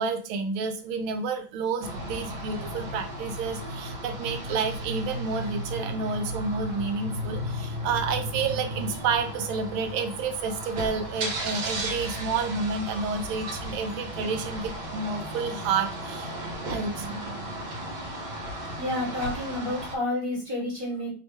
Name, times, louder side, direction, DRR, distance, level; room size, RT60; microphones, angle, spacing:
voice 1, 0.0-16.3 16.7-17.2, right 5 dB, 85° right, 7 dB, 1.4 m, -30 dB
sound 1, 1.8-19.9, equal, 60° right, 1.5 m, -35 dB
voice 2, 18.8-21.1, left 1 dB, 15° right, -7 dB, 1.5 m, -30 dB
3.5 x 3.1 x 3.1 m, 0.38 s
omnidirectional pair, 2.2 m